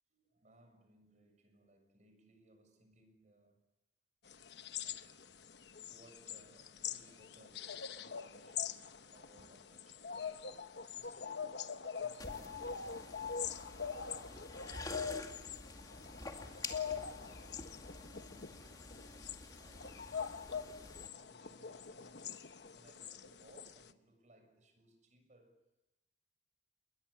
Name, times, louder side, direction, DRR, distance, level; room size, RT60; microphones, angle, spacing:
voice 1, 0.2-3.6 4.7-5.2 5.8-11.7 11.9-13.0 13.5-15.5 16.1-17.4 17.9-18.6 19.2-20.6 21.1-25.6, right 1 dB, 40° right, 6.9 m, -65 dB
sound 1, 4.3-23.9, left 7 dB, 70° left, 1.0 m, -44 dB
sound 2, 12.2-21.1, left 2 dB, 20° left, 2.3 m, -49 dB
29.5 x 22.0 x 8.4 m
head